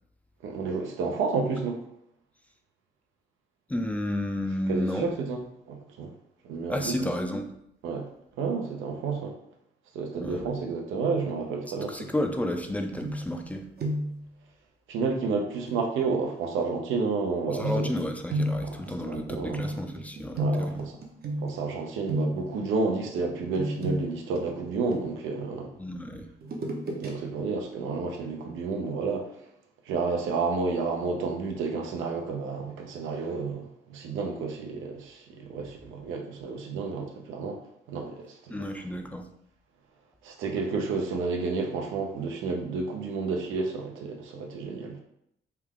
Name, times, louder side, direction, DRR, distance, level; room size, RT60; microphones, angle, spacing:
voice 1, 0.4-1.8 4.7-5.4 5.7-6.1 6.4-6.9 7.8-8.1 8.4-9.3 9.9-11.9 14.9-17.9 19.1-19.6 20.4-20.9 21.4-25.7 27.0-29.3 29.9-37.6 37.9-38.4 40.2-45.0, right 4 dB, 85° right, 3 dB, 0.6 m, -30 dB
voice 2, 3.7-5.1 6.7-7.4 10.2-10.5 11.9-13.7 17.5-20.8 25.8-26.3 38.5-39.3, left 1 dB, 5° left, 4 dB, 0.4 m, -31 dB
sound 1, 13.0-13.5 13.8-14.2 15.7-15.8 17.6-21.7 22.1-22.6 23.5-25.4 26.4-27.1 27.5-27.6, right 1 dB, 50° right, 0.7 m, -32 dB
3.3 x 2.3 x 3.5 m, 0.75 s
cardioid pair, 90°, 20 cm